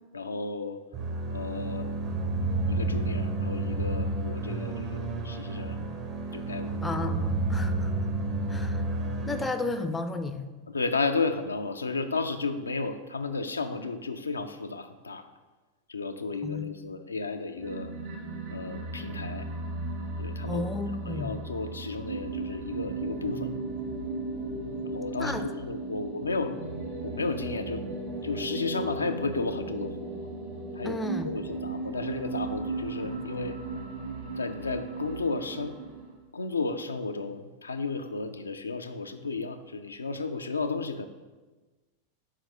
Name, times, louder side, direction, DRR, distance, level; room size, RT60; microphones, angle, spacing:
voice 1, 0.1-0.8 1.3-1.9 2.4-5.8 6.3-6.8 10.7-15.3 15.9-17.9 18.5-19.5 20.2-20.6 21.1-23.5 24.8-26.6 27.0-27.9 28.2-30.1 30.7-31.0 31.2-33.6 34.4-35.8 36.3-41.1, left 3 dB, 75° left, 7 dB, 0.3 m, -33 dB
sound 1, 0.9-9.5, right 2 dB, 35° right, 0.7 m, -30 dB
voice 2, 6.8-7.9 8.5-8.8 9.3-10.5 16.4-16.7 20.5-21.4 25.2-25.4 30.8-31.3, left 2 dB, 10° left, 8 dB, 0.4 m, -33 dB
sound 2, 17.6-36.2, right 3 dB, 50° right, 1.3 m, -36 dB
6.3 x 4.5 x 3.8 m, 1.2 s
figure-of-eight pair, 90°, 0 cm